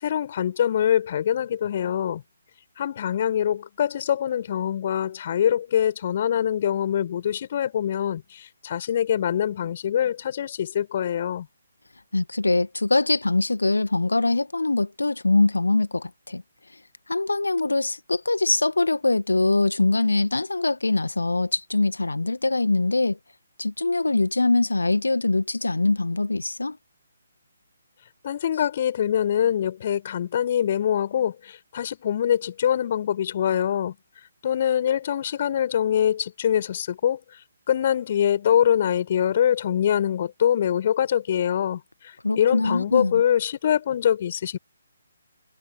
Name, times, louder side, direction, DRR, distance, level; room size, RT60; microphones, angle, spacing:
voice 1, 0.0-2.2 2.8-11.5 28.2-33.9 34.4-37.2 37.7-41.8 42.3-44.6, left 9 dB, 40° left, 6.3 m, -24 dB
voice 2, 12.1-16.4 17.1-23.2 23.6-26.8 42.2-43.2, left 2 dB, 70° left, 1.8 m, -23 dB
figure-of-eight pair, 140°, 0 cm